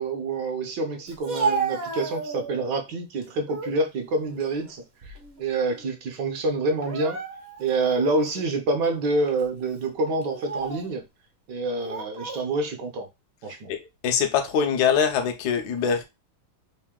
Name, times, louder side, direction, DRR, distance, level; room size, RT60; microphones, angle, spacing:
voice 1, 0.0-7.2 7.6-11.0 11.5-13.1 13.4-13.7, right 2 dB, 65° right, 1.2 m, -27 dB
Speech, 1.1-2.7 3.2-3.8 4.2-5.4 5.7-5.9 6.7-7.7 8.3-8.4 9.2-9.4 10.2-10.9 11.8-12.5, right 4 dB, 50° right, 0.7 m, -32 dB
voice 2, 14.0-16.0, left 7 dB, 65° left, 1.1 m, -23 dB
3.7 x 2.6 x 3.6 m
omnidirectional pair, 2.3 m